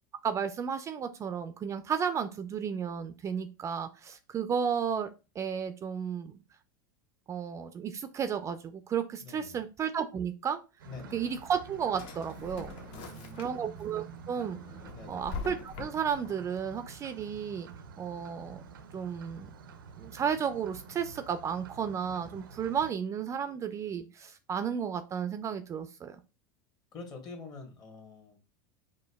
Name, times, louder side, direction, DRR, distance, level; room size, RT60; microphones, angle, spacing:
voice 1, 0.2-5.1 5.4-6.3 7.3-10.6 11.1-12.7 13.4-14.6 15.1-17.7 18.0-18.6 18.9-19.5 20.0-26.2, right 7 dB, 25° right, 0.3 m, -33 dB
voice 2, 9.2-9.6 10.8-11.2 12.9-13.6 14.9-15.3 26.9-28.4, left 3 dB, 40° left, 1.0 m, -46 dB
sound 1, 10.8-22.9, right 5 dB, 85° right, 0.5 m, -49 dB
Drawer open or close, 11.3-13.8 14.3-16.3, left 5 dB, 55° left, 0.6 m, -44 dB
5.0 x 2.2 x 2.2 m
hypercardioid pair, 90°, 11 cm